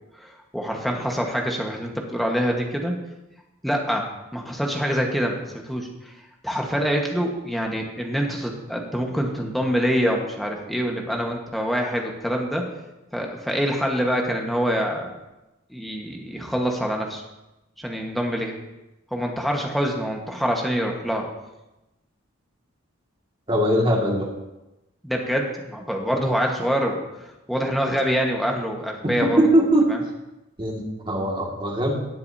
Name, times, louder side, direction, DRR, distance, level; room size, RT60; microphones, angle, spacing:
voice 1, 0.2-3.0 3.6-5.9 6.4-12.7 13.1-15.1 15.7-17.2 17.8-18.6 19.1-21.3 25.0-27.0 27.5-29.4 29.9-30.0, equal, ahead, 0 dB, 1.4 m, -25 dB
voice 2, 23.5-24.3 29.2-29.9 30.6-32.0, right 1 dB, 25° right, -1 dB, 2.0 m, -21 dB
17.5 x 8.0 x 2.8 m, 0.98 s
head